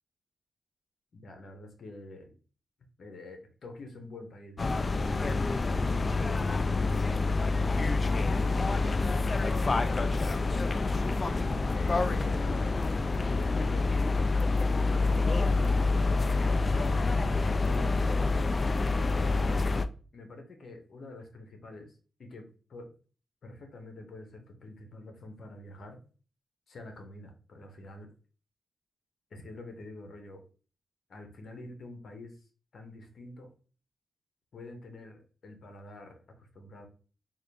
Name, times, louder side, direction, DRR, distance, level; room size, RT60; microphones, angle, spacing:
voice 1, 1.1-2.3 3.0-4.8 11.7-12.7 13.2-17.0 17.6-18.6 18.9-21.9 22.2-22.9 23.4-26.0 26.7-28.1 29.3-30.4 31.1-32.4 32.7-33.5 34.5-36.9, left 2 dB, 65° left, 5 dB, 1.1 m, -46 dB
sound 1, 4.6-19.9, left 3 dB, 40° left, 0.3 m, -27 dB
3.8 x 2.5 x 3.3 m, 0.37 s
cardioid pair, 70°, 0 cm